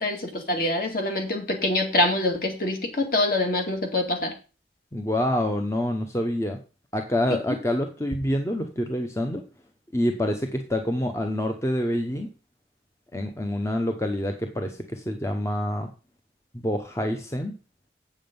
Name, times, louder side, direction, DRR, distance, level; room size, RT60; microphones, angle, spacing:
voice 1, 0.0-4.3, left 1 dB, 50° left, 3 dB, 2.2 m, -25 dB
voice 2, 4.9-6.6 6.9-9.4 9.9-12.3 13.1-15.9 16.5-17.5, left 1 dB, 15° left, 5 dB, 0.8 m, -27 dB
7.9 x 7.3 x 5.3 m, 0.33 s
head